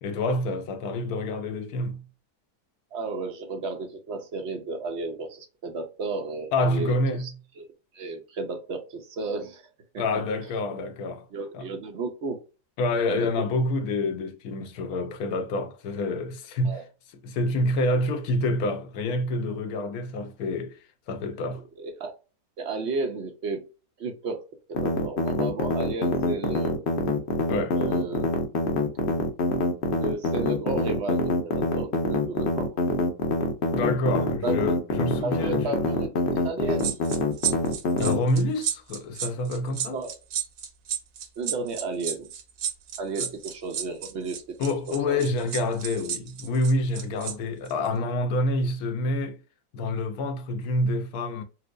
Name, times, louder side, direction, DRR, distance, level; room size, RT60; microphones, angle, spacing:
voice 1, 0.0-2.0 6.5-7.4 10.0-11.3 11.5-11.7 12.8-16.8 17.2-20.8 21.1-21.6 27.5-27.8 33.7-35.8 38.0-40.0 43.2-43.3 44.6-49.4 49.7-51.4, left 1 dB, 70° left, 1.1 m, -27 dB
voice 2, 2.9-7.3 7.6-7.7 7.9-9.7 9.9-10.2 11.3-12.4 13.1-13.3 16.6-16.8 21.8-22.1 22.6-23.7 24.0-24.4 24.7-26.8 27.7-28.3 30.0-32.8 34.4-34.5 35.2-37.0 39.9-40.1 41.4-42.3 43.0-44.6 45.1-45.3, right 3 dB, 55° right, 0.9 m, -33 dB
sound 1, 24.7-38.2, left 3 dB, 55° left, 0.8 m, -25 dB
sound 2, 36.8-47.3 47.7-47.9, right 9 dB, 80° right, 1.3 m, -32 dB
4.4 x 2.0 x 2.4 m
omnidirectional pair, 1.7 m